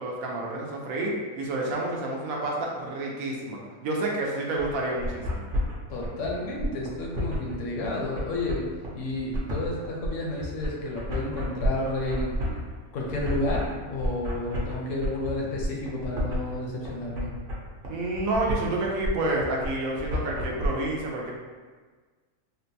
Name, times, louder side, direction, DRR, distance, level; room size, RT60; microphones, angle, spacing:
voice 1, 0.0-5.4 17.9-21.3, right 2 dB, 85° right, -2 dB, 1.1 m, -29 dB
sound 1, 4.6-20.7, equal, 50° right, 0.8 m, -31 dB
voice 2, 5.9-8.6 8.9-12.4 12.9-17.3, left 2 dB, 70° left, -2 dB, 0.9 m, -31 dB
3.7 x 2.2 x 2.7 m, 1.4 s
omnidirectional pair, 1.4 m